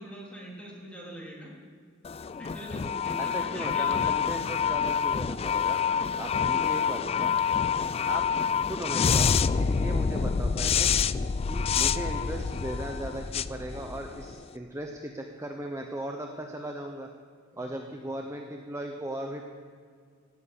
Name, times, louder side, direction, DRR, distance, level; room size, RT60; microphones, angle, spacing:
voice 1, 0.0-1.6 2.4-4.2 6.2-6.9 7.6-7.9 17.5-17.8, right 1 dB, 5° left, -3 dB, 3.5 m, -43 dB
sound 1, 2.0-14.4, left 6 dB, 30° left, 0.3 m, -27 dB
voice 2, 3.2-5.8 6.2-7.3 8.1-8.3 8.7-10.9 11.5-17.1 17.6-19.5, right 1 dB, 15° right, 3 dB, 0.8 m, -37 dB
15.0 x 9.5 x 8.7 m, 2.1 s
head